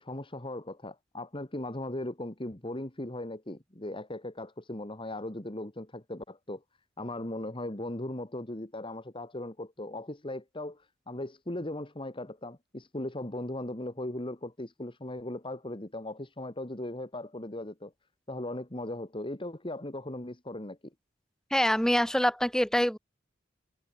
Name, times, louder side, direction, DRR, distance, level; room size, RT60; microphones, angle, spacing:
voice 1, 0.0-6.6 7.0-17.9 18.3-20.8, left 1 dB, 25° left, 2.3 m, -38 dB
voice 2, 21.5-23.0, equal, 5° left, 1.8 m, -25 dB
head